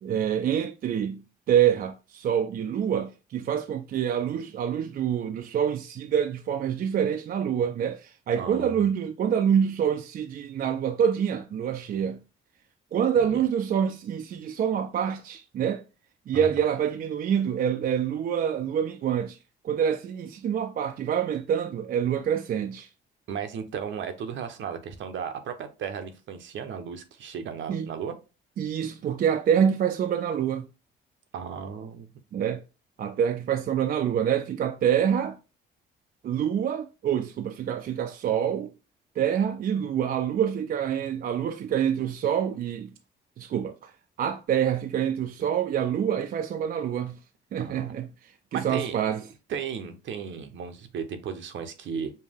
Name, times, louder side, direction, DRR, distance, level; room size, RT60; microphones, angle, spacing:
voice 1, 0.0-12.2 12.9-15.8 16.3-19.4 19.6-22.9 27.7-27.9 28.6-30.7 32.3-32.6 33.0-35.4 36.2-38.7 39.2-42.9 43.4-43.9 44.2-47.2 47.5-49.2, right 8 dB, 50° right, 0.4 m, -26 dB
voice 2, 8.4-8.9 13.2-13.4 16.3-16.5 23.3-28.2 31.3-32.1 47.6-47.9 48.5-49.0 49.5-52.1, right 7 dB, 70° right, 0.8 m, -35 dB
5.4 x 2.2 x 3.4 m
cardioid pair, 90°, 20 cm